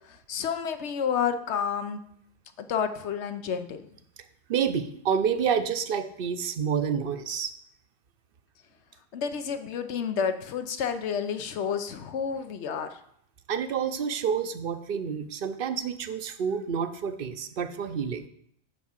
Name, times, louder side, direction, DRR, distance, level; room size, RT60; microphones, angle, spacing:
voice 1, 0.3-2.0 2.6-3.8 9.1-12.9, left 7 dB, 90° left, 9 dB, 1.0 m, -30 dB
voice 2, 4.5-7.5 13.5-18.3, right 7 dB, 60° right, 11 dB, 0.8 m, -28 dB
10.5 x 3.6 x 7.3 m, 0.69 s
omnidirectional pair, 1.1 m